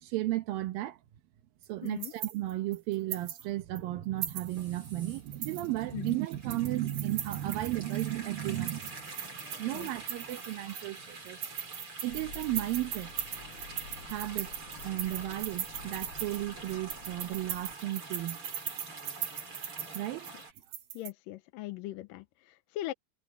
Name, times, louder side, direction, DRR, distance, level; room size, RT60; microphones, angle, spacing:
voice 1, 0.0-1.0 1.7-9.1 9.6-11.4 12.0-13.3 14.0-14.5 14.8-18.4 19.9-20.3, right 16 dB, 75° right, 2.6 m, -34 dB
sound 1, 1.6-3.4 3.7-3.8 4.2-4.9 5.3-8.1 8.5-11.0 11.3-21.1, right 9 dB, 55° right, 2.5 m, -39 dB
voice 2, 1.8-2.1 5.9-6.2 9.7-9.9 20.9-22.9, left 16 dB, 80° left, 2.1 m, -40 dB
sound 2, 4.4-20.5, right 3 dB, 35° right, 6.9 m, -47 dB
sound 3, 12.1-17.7, left 4 dB, 45° left, 3.2 m, -50 dB
omnidirectional pair, 4.5 m